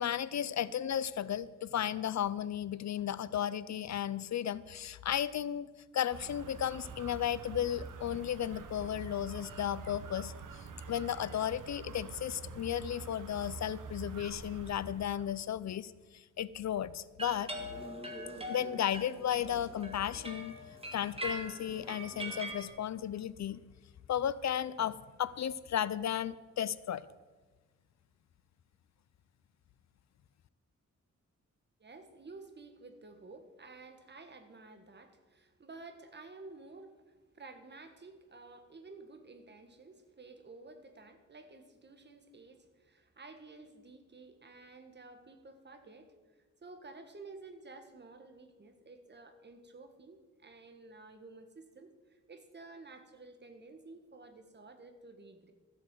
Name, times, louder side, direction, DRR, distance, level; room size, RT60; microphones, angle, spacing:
voice 1, 0.0-10.3 10.9-17.5 18.5-20.6 20.9-23.6 24.1-27.1, left 10 dB, 60° left, 18 dB, 0.5 m, -34 dB
sound 1, 6.1-15.4, right 5 dB, 85° right, 1.1 m, -46 dB
sound 2, 17.2-22.7, right 1 dB, 20° right, 2.0 m, -42 dB
voice 2, 31.8-46.1 46.6-55.5, right 3 dB, 35° right, 7 dB, 1.5 m, -52 dB
14.0 x 8.0 x 7.5 m, 1.3 s
wide cardioid pair, 125°, 30 cm